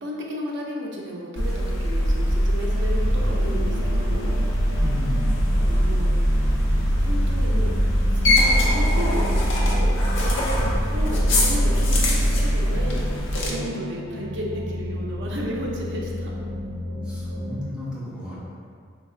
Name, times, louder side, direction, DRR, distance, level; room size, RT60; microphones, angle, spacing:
voice 1, 0.0-4.2 5.7-6.1 7.0-7.7 8.1-13.0 13.5-16.3, equal, 55° right, -2 dB, 0.5 m, -33 dB
sound 1, 1.4-13.5, equal, 60° left, 0.5 m, -21 dB
sound 2, 3.0-17.6, left 1 dB, 20° right, 1.0 m, -33 dB
voice 2, 4.8-5.6 10.5-10.8 17.0-18.4, left 1 dB, 5° right, -10 dB, 0.6 m, -33 dB
3.1 x 2.2 x 3.7 m, 2.1 s
head